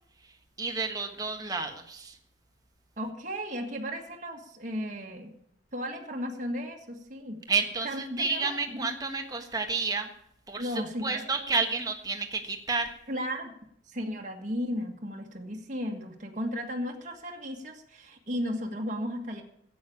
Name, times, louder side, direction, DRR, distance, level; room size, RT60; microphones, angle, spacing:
voice 1, 0.6-2.2 7.5-10.1 10.5-10.7 11.0-12.9, right 4 dB, 20° right, 4 dB, 1.4 m, -30 dB
voice 2, 3.0-5.4 5.7-7.4 7.8-8.9 10.6-11.3 13.1-13.5 13.9-19.4, equal, 40° right, 1 dB, 1.6 m, -35 dB
11.5 x 8.6 x 8.4 m, 0.71 s
head